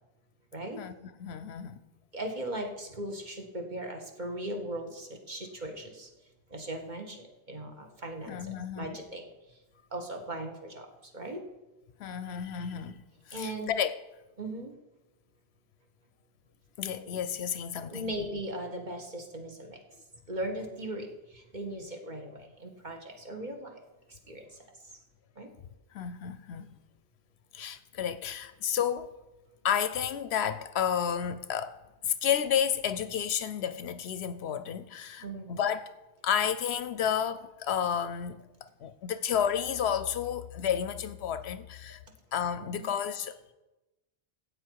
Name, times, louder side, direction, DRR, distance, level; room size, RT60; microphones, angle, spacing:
voice 1, 1.2-1.8 8.3-9.0 12.0-14.0 16.8-18.1 25.9-26.8 27.5-29.1 29.6-31.8 32.0-35.9 36.2-42.0 42.3-43.5, left 8 dB, 70° left, 0.8 m, -31 dB
voice 2, 2.1-6.1 6.5-9.6 9.9-11.4 13.3-13.7 14.4-14.7 17.9-19.8 20.3-23.7 24.1-24.6 25.3-25.5 35.2-35.6 42.6-43.0, right 1 dB, 40° right, 1.5 m, -38 dB
13.0 x 8.4 x 4.6 m
omnidirectional pair, 1.2 m